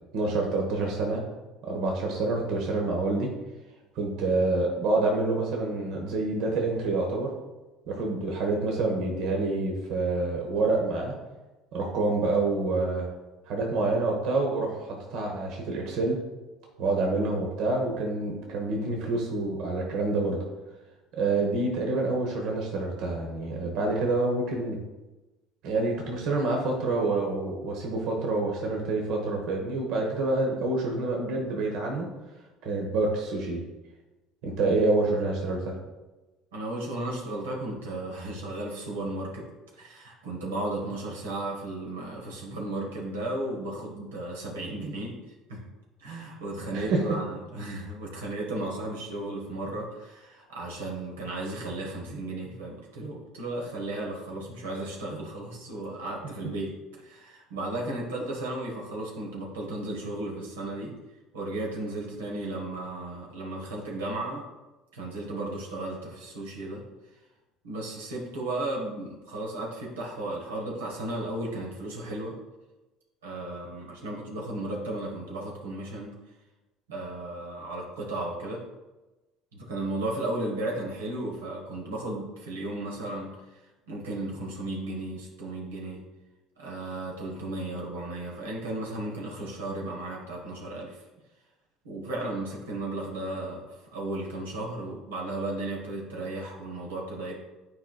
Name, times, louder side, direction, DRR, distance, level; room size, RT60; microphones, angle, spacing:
voice 1, 0.1-1.2 1.6-3.3 3.9-7.3 7.9-11.1 11.7-13.1 13.5-16.2 16.8-20.4 21.1-24.8 25.6-32.1 32.6-33.6 34.4-35.7 46.7-47.0, right 3 dB, 65° right, 0 dB, 1.1 m, -27 dB
voice 2, 36.5-39.4 39.7-45.2 45.5-45.6 46.0-56.8 57.0-60.9 61.3-64.4 64.9-66.8 67.6-72.4 73.2-76.2 76.9-78.6 79.5-83.3 83.9-86.0 86.6-91.0 91.8-97.4, right 2 dB, 90° right, -2 dB, 1.3 m, -34 dB
9.2 x 4.4 x 2.3 m, 1.1 s
hypercardioid pair, 70°, 0 cm